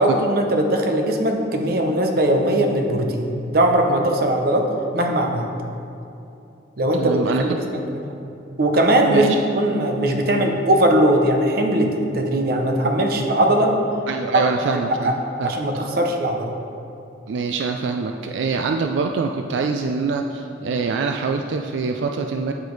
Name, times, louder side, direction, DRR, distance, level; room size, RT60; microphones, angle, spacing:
voice 1, 0.0-4.7 4.9-5.5 6.8-8.0 8.6-13.7 14.3-14.4 15.0-15.1 15.4-16.5, right 1 dB, 55° right, 3 dB, 0.7 m, -19 dB
voice 2, 7.0-7.4 9.1-9.4 14.1-15.1 15.4-15.5 17.3-22.5, right 4 dB, 85° right, 4 dB, 0.3 m, -24 dB
8.7 x 4.8 x 3.9 m, 2.7 s
head